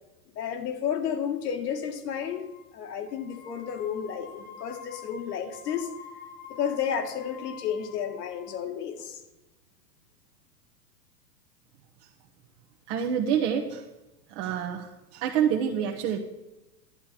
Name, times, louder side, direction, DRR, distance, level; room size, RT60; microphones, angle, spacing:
voice 1, 0.4-5.9 6.5-9.2, left 8 dB, 70° left, 6 dB, 2.0 m, -32 dB
sound 1, 2.3-2.7 3.1-8.7, left 6 dB, 20° left, 1.5 m, -47 dB
voice 2, 12.9-13.8 14.3-16.2, right 8 dB, 45° right, 0 dB, 1.2 m, -27 dB
11.0 x 10.5 x 4.4 m, 1.0 s
hypercardioid pair, 130°, 49 cm